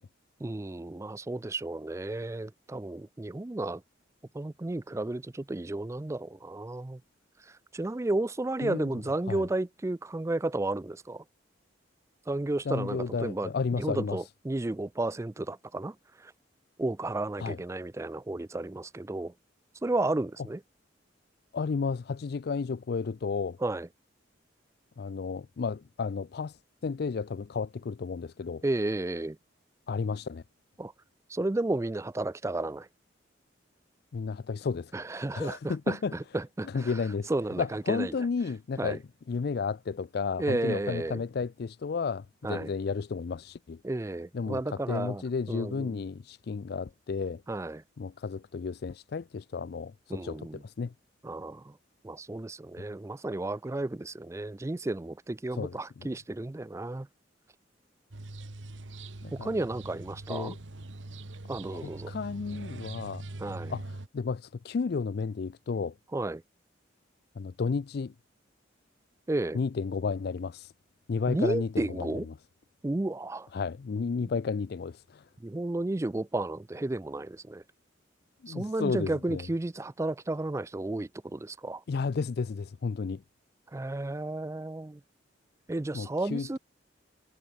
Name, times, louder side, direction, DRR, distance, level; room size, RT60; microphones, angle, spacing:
voice 1, 0.4-3.8 4.3-7.0 7.5-11.2 12.3-16.3 16.8-19.3 19.8-20.6 23.6-23.9 28.6-29.4 30.8-30.9 31.3-32.9 34.9-36.9 37.3-38.1 38.8-39.0 40.4-41.2 42.4-42.7 43.8-45.2 45.5-46.0 47.5-47.8 50.1-50.6 51.2-51.8 52.0-57.1 59.3-60.5 61.5-62.1 63.4-63.7 66.1-66.4 69.3-69.6 71.3-72.3 72.8-73.5 74.2-74.3 75.4-77.6 78.5-81.8 83.7-85.0 85.7-86.6, right 2 dB, 15° right, 0.4 m, -32 dB
voice 2, 12.7-14.2 17.4-17.6 21.5-23.6 25.0-28.6 29.9-30.4 34.1-34.9 35.3-36.1 36.7-37.3 37.6-39.0 39.3-43.8 44.3-47.4 48.0-50.9 55.5-56.1 59.2-59.5 60.3-60.6 61.8-63.2 63.7-65.9 67.4-68.1 69.5-70.7 71.1-72.2 73.5-75.3 78.4-79.5 81.9-83.2 85.9-86.6, left 5 dB, 55° left, 0.4 m, -32 dB
sound 1, 58.1-64.1, right 2 dB, 80° right, 1.4 m, -42 dB
head